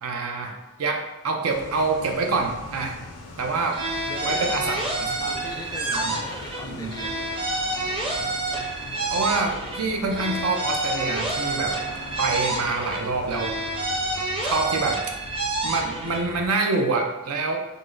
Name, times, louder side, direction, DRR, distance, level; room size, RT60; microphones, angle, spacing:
voice 1, 0.0-3.0 3.4-3.8 4.2-4.6 5.3-5.4 6.0-6.2 6.6-6.9 9.1-11.8 12.2-13.5 14.2-15.0 15.6-17.6, right 3 dB, 75° right, 3 dB, 0.6 m, -26 dB
sound 1, 1.5-16.5, left 2 dB, 90° left, 0.7 m, -40 dB
sound 2, 3.7-6.6 6.9-9.8 10.1-13.0 13.3-16.2, right 2 dB, 25° right, 0.7 m, -28 dB
voice 2, 4.0-4.9 5.2-7.2, left 2 dB, 15° left, 2 dB, 0.3 m, -38 dB
5.3 x 2.1 x 3.8 m, 1.0 s
head